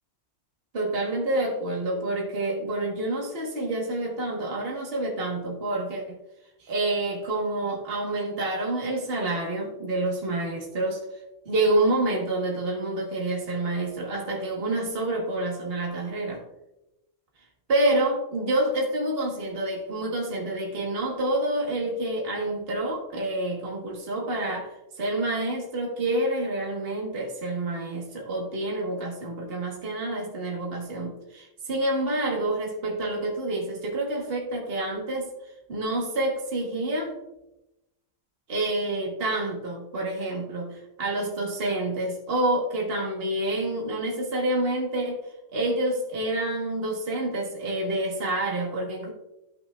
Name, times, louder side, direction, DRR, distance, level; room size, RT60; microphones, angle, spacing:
voice 1, 0.7-6.2 6.6-11.0 11.4-16.4 17.7-35.3 35.7-37.2 38.5-45.2 45.5-49.1, right 2 dB, 45° right, -1 dB, 1.7 m, -28 dB
14.0 x 5.7 x 2.4 m, 0.92 s
omnidirectional pair, 1.5 m